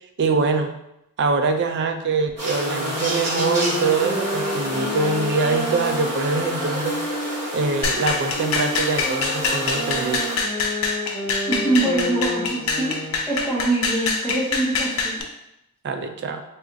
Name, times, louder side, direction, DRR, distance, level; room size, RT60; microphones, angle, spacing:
voice 1, 0.2-0.7 1.2-7.0 7.5-10.2 15.8-16.4, right 4 dB, 50° right, 5 dB, 0.3 m, -23 dB
sound 1, 2.4-10.4, equal, 30° right, 1.3 m, -29 dB
sound 2, 2.5-7.9 8.3-13.2, left 2 dB, 35° left, 0.8 m, -31 dB
sound 3, 7.8-15.2, left 4 dB, 65° left, 0.4 m, -25 dB
voice 2, 11.5-15.3, right 2 dB, 5° left, -6 dB, 0.9 m, -24 dB
2.8 x 2.4 x 3.8 m, 0.85 s
head